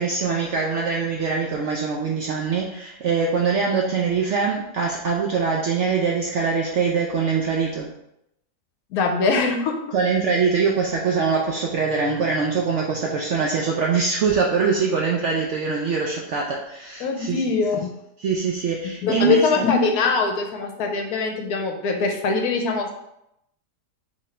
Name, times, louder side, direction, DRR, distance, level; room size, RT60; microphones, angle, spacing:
voice 1, 0.0-7.9 9.9-17.4 18.2-19.6, right 5 dB, 70° right, -1 dB, 0.7 m, -23 dB
voice 2, 8.9-9.8 17.0-17.9 19.0-22.9, left 4 dB, 70° left, 4 dB, 1.0 m, -22 dB
3.8 x 3.2 x 4.2 m, 0.81 s
omnidirectional pair, 1.8 m